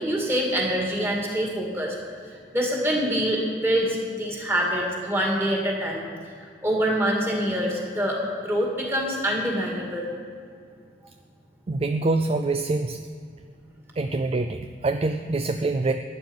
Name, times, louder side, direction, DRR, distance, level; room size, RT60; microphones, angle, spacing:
voice 1, 0.0-1.9 2.5-6.1 6.6-10.1, equal, 15° right, -2 dB, 2.2 m, -25 dB
voice 2, 11.7-13.0 14.0-15.9, right 3 dB, 35° right, 8 dB, 0.4 m, -25 dB
12.0 x 9.3 x 5.5 m, 2.2 s
head